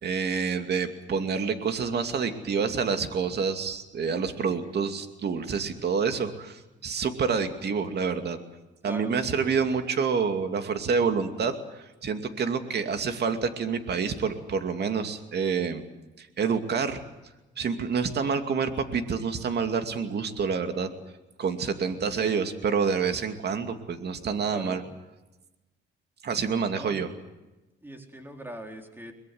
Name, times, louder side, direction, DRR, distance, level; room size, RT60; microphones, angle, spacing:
voice 1, 0.0-8.4 8.8-15.8 16.2-17.0 17.6-20.9 21.4-24.8 26.2-27.1, right 5 dB, 55° right, 7 dB, 2.6 m, -28 dB
voice 2, 8.8-9.4 24.5-24.9 26.7-27.0 27.8-29.1, equal, 10° right, 3 dB, 4.2 m, -41 dB
23.0 x 21.5 x 8.0 m, 1.0 s
cardioid pair, 90°, 20 cm